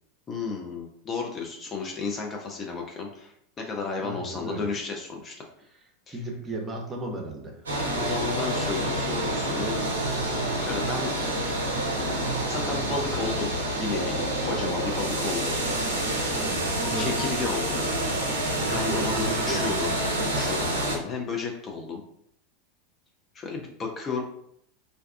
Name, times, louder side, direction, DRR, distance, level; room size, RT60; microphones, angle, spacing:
voice 1, 0.3-5.5 6.1-6.2 8.0-9.8 10.3-11.1 12.5-15.6 17.0-17.8 18.7-19.9 20.3-22.0 23.3-24.2, left 4 dB, 30° left, 1 dB, 0.4 m, -33 dB
voice 2, 4.0-4.7 6.1-7.9 16.3-17.4 18.6-19.8, right 2 dB, 20° right, 1 dB, 0.7 m, -35 dB
sound 1, 7.7-21.0, right 1 dB, 85° right, 0.5 m, -28 dB
2.5 x 2.2 x 2.3 m, 0.71 s
figure-of-eight pair, 85°, 0 cm